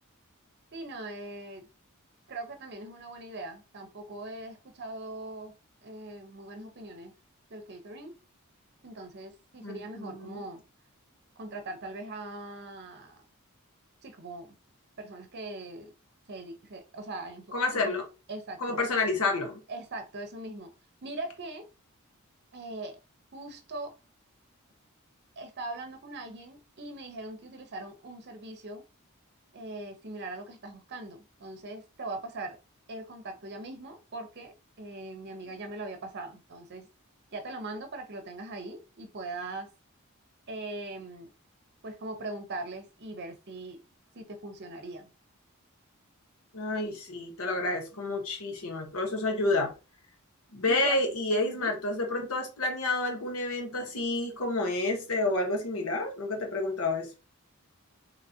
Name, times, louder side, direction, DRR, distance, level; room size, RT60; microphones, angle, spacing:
voice 1, 0.7-1.6 2.3-5.5 5.8-7.1 7.5-8.1 8.8-10.6 11.4-13.2 14.0-14.5 15.0-15.9 16.3-17.8 18.3-18.8 19.7-20.7 21.0-21.6 22.5-23.0 23.3-23.9 25.4-28.8 29.5-32.6 32.9-36.9 37.3-39.7 40.5-41.3 41.8-43.8 44.1-45.1 50.7-51.0 51.5-51.7, right 2 dB, 50° right, 0.8 m, -41 dB
voice 2, 9.6-10.4 17.5-18.0 18.6-19.6 46.5-49.7 50.5-57.1, left 2 dB, 80° left, 1.1 m, -29 dB
3.9 x 2.9 x 2.7 m
head